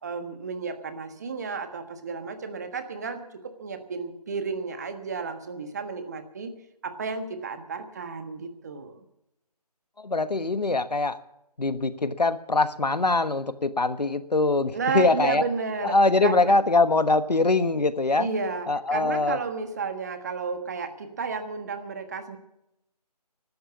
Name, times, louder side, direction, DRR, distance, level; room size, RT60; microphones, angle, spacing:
voice 1, 0.0-6.5 6.8-9.0 14.7-16.0 16.2-16.6 18.2-22.4, right 5 dB, 25° right, 8 dB, 1.4 m, -32 dB
voice 2, 10.0-11.2 11.6-15.4 15.8-18.3 18.7-19.4, left 3 dB, 75° left, 13 dB, 1.4 m, -23 dB
15.5 x 12.5 x 7.3 m, 0.84 s
figure-of-eight pair, 160°, 21 cm